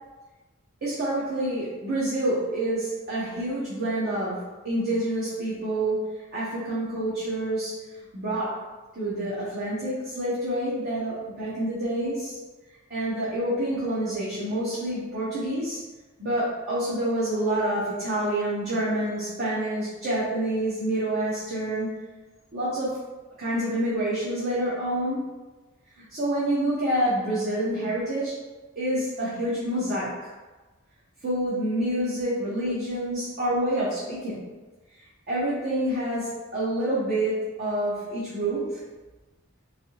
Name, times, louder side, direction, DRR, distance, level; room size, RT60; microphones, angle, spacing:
voice 1, 0.8-6.1 6.3-7.7 8.1-8.6 9.0-12.4 12.9-15.8 16.2-21.9 22.5-23.0 23.4-25.3 26.1-28.3 28.8-30.1 31.2-34.4 35.3-38.8, right 1 dB, 50° right, -9 dB, 0.8 m, -27 dB
3.3 x 2.7 x 2.8 m, 1.2 s
head